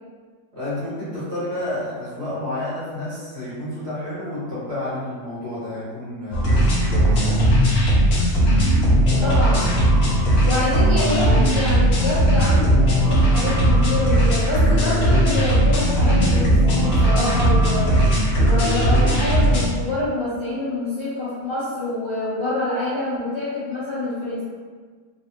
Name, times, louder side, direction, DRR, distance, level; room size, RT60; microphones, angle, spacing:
voice 1, 0.5-7.5 10.5-10.7, left 1 dB, 55° right, -11 dB, 1.7 m, -30 dB
sound 1, 6.3-19.6, right 1 dB, 55° left, 0.9 m, -17 dB
voice 2, 9.2-9.7 10.4-18.0 18.3-24.4, left 2 dB, 35° left, -11 dB, 0.5 m, -26 dB
3.2 x 2.5 x 2.8 m, 1.5 s
omnidirectional pair, 1.3 m